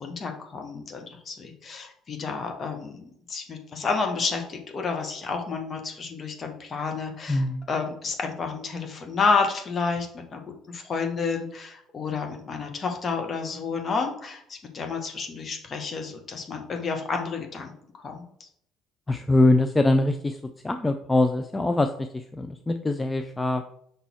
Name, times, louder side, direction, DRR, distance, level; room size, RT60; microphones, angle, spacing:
voice 1, 0.0-10.4 10.7-18.5, left 4 dB, 35° left, 3 dB, 1.3 m, -30 dB
voice 2, 7.3-7.7 19.1-20.4 20.6-23.6, left 2 dB, 15° left, 7 dB, 0.5 m, -23 dB
5.3 x 4.0 x 4.5 m, 0.70 s
figure-of-eight pair, 50°, 0 cm